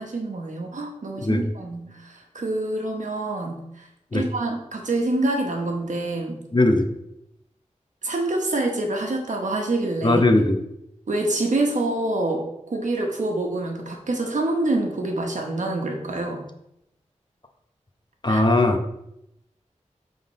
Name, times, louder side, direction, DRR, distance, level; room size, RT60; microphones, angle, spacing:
voice 1, 0.0-3.9 4.1-6.4 8.0-10.2 11.1-16.4 18.3-18.4, right 2 dB, 80° right, 1 dB, 1.2 m, -26 dB
voice 2, 6.5-6.9 10.0-10.6 18.2-18.8, left 2 dB, 35° left, 5 dB, 0.8 m, -19 dB
7.3 x 3.8 x 4.1 m, 0.81 s
wide cardioid pair, 60°, 13 cm